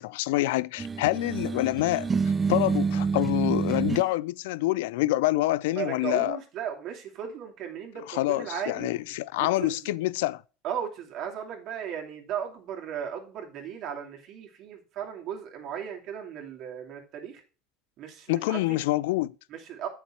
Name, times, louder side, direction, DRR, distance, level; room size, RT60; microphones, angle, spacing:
voice 1, 0.0-2.1 2.5-6.4 8.1-10.4 18.3-19.4, left 18 dB, 75° left, 0.4 m, -26 dB
sound 1, 0.8-4.1, right 5 dB, 25° right, 0.3 m, -27 dB
voice 2, 5.8-8.9 9.4-9.9 10.6-17.4 18.0-18.8 19.5-19.9, right 8 dB, 55° right, 2.7 m, -36 dB
8.1 x 6.5 x 4.5 m
hypercardioid pair, 85°, 0 cm